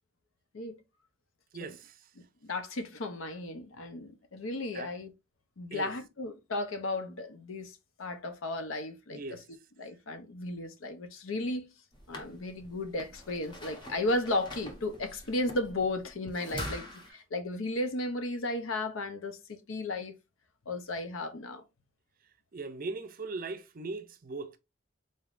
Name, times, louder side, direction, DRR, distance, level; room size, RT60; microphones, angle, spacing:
voice 1, 1.5-2.1 4.7-4.9 5.7-5.9 9.1-9.5 22.5-24.6, right 3 dB, 45° right, 0.5 m, -39 dB
voice 2, 2.4-5.1 5.6-9.2 9.8-11.7 12.1-20.1 20.7-21.6, left 2 dB, 80° left, 0.7 m, -34 dB
sound 1, 11.9-17.1, left 1 dB, 25° left, 0.9 m, -44 dB
4.0 x 3.5 x 2.5 m
head